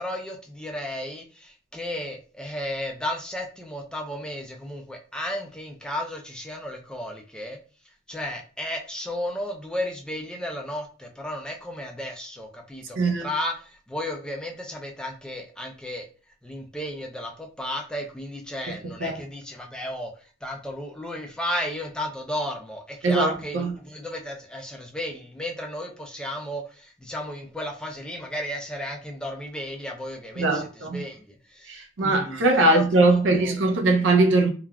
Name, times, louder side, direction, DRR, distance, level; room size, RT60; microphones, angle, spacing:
voice 1, 0.0-7.6 8.1-16.1 16.4-33.7, left 1 dB, 5° left, 0.3 m, -34 dB
voice 2, 13.0-13.3 19.0-19.2 23.0-23.7 30.4-31.0 31.7-34.5, right 2 dB, 70° right, 0.5 m, -21 dB
3.3 x 2.3 x 2.2 m
head